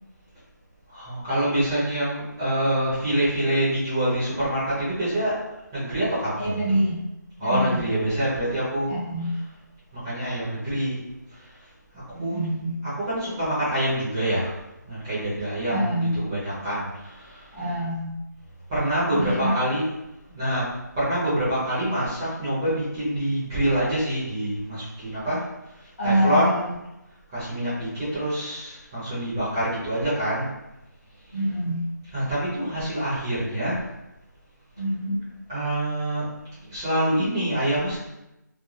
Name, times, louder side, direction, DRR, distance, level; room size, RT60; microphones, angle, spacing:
voice 1, 0.9-5.4 5.7-6.8 7.4-8.9 9.2-9.3 9.9-11.0 11.3-11.4 12.2-12.4 12.8-14.6 14.8-17.5 18.7-19.8 20.3-20.7 20.9-25.4 25.8-26.7 27.3-30.5 32.1-33.8 35.5-36.2 36.6-38.0, right 1 dB, 10° right, -13 dB, 0.8 m, -26 dB
voice 2, 6.4-6.9 7.4-7.8 8.9-9.3 12.1-12.7 15.7-16.1 17.5-18.1 19.1-19.7 26.0-26.7 31.3-31.8 34.8-35.2, equal, 40° left, -7 dB, 1.1 m, -25 dB
2.5 x 2.0 x 3.2 m, 0.93 s
figure-of-eight pair, 165°, 10 cm